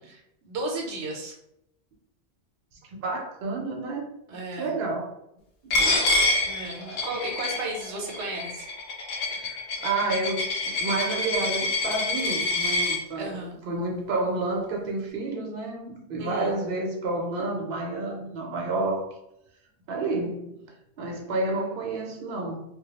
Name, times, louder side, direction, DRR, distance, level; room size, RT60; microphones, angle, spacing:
voice 1, 0.1-1.3 4.3-4.7 6.4-8.7 13.2-13.5 16.2-16.5, right 2 dB, 90° right, 0 dB, 0.9 m, -34 dB
voice 2, 3.0-4.1 4.5-5.1 5.7-6.2 6.9-7.0 9.3-13.4 13.6-19.1 19.9-20.6 21.0-22.6, right 2 dB, 60° right, 0 dB, 0.8 m, -30 dB
Coin (dropping), 5.7-13.0, left 2 dB, 85° left, 0.9 m, -27 dB
2.2 x 2.0 x 2.9 m, 0.79 s
omnidirectional pair, 1.1 m